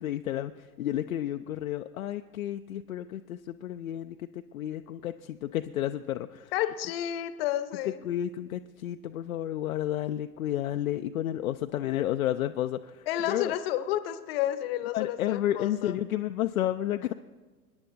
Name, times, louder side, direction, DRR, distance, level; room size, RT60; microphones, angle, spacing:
voice 1, 0.0-6.5 8.0-13.6 14.9-17.1, left 12 dB, 60° left, 7 dB, 0.5 m, -31 dB
voice 2, 6.5-8.0 13.1-16.0, left 12 dB, 40° left, 12 dB, 0.9 m, -31 dB
25.5 x 10.5 x 2.6 m, 1.3 s
figure-of-eight pair, 105°, 48 cm